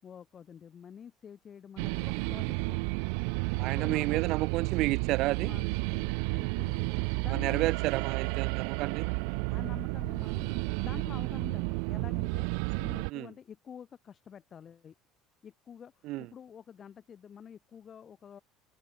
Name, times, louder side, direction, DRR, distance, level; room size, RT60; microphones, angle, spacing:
voice 1, 0.0-2.9 3.6-4.2 5.4-6.9 7.2-7.8 9.0-9.1 9.5-14.9 15.4-18.4, left 8 dB, 35° left, 5.9 m, -48 dB
sound 1, 1.8-13.1, right 40 dB or more, 85° right, 0.4 m, -32 dB
voice 2, 3.6-5.5 6.9-9.1 13.1-13.3 16.0-16.3, right 18 dB, 65° right, 1.0 m, -31 dB
cardioid pair, 130°, 0 cm